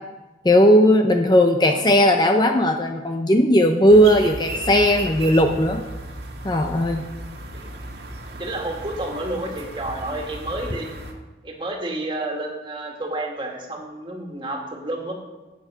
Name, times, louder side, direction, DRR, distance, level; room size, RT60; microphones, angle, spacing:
voice 1, 0.4-5.8 6.4-7.0, equal, 25° left, 5 dB, 0.6 m, -17 dB
sound 1, 3.9-11.1, right 1 dB, 70° right, 1.7 m, -35 dB
voice 2, 8.4-11.0 11.4-15.1, right 1 dB, 25° right, 1 dB, 2.0 m, -30 dB
14.0 x 8.9 x 5.7 m, 1.2 s
head